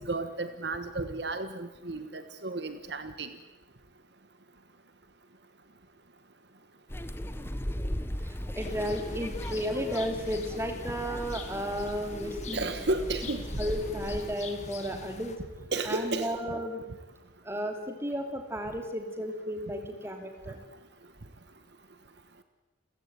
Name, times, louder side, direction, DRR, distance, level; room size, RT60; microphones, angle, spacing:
voice 1, 0.0-3.3 12.5-13.4 15.7-16.3, right 2 dB, 55° right, 9 dB, 1.4 m, -33 dB
sound 1, 6.9-14.4, equal, 10° left, 1.0 m, -37 dB
voice 2, 8.2-12.6 13.6-15.4 15.9-16.8 17.4-20.6, equal, 15° right, 4 dB, 2.9 m, -33 dB
sound 2, 8.6-15.4, left 3 dB, 35° left, 2.3 m, -45 dB
29.5 x 15.5 x 9.5 m, 1.1 s
head